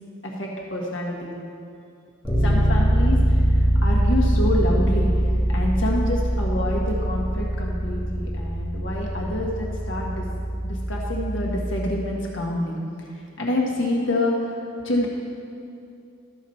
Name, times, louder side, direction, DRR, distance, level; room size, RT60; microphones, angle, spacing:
voice 1, 0.2-1.4 2.4-10.2 10.6-12.8 13.1-14.6 14.8-15.1, left 1 dB, 70° left, -2 dB, 1.6 m, -27 dB
Bass guitar, 2.2-12.1, equal, ahead, 2.4 m, -23 dB
13.0 x 6.2 x 4.2 m, 2.5 s
head